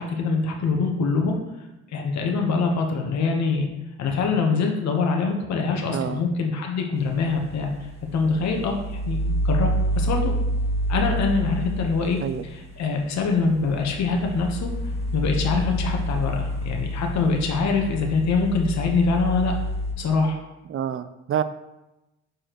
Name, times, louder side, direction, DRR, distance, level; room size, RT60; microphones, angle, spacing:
voice 1, 0.0-1.4 1.9-3.7 4.0-7.7 8.1-9.7 9.9-10.3 10.9-14.7 15.1-19.5 20.0-20.4, left 4 dB, 65° left, 2 dB, 1.1 m, -24 dB
voice 2, 5.9-6.2 12.2-12.4 20.7-21.4, right 9 dB, 45° right, 13 dB, 0.4 m, -27 dB
sound 1, 7.0-19.9, equal, 20° right, 1.2 m, -28 dB
6.2 x 4.9 x 3.0 m, 0.97 s
cardioid pair, 90°, 30 cm